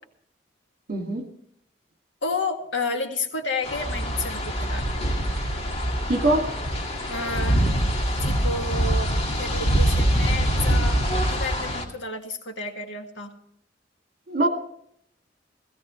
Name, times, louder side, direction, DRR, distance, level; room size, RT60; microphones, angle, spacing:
voice 1, 0.9-1.3 6.1-6.5 14.3-14.5, right 2 dB, 55° right, 2.3 m, -22 dB
voice 2, 2.2-5.1 7.1-7.7 8.2-13.3, left 3 dB, 80° left, 2.0 m, -31 dB
sound 1, 3.6-11.8, right 1 dB, 35° left, 2.1 m, -24 dB
17.5 x 16.0 x 3.2 m
head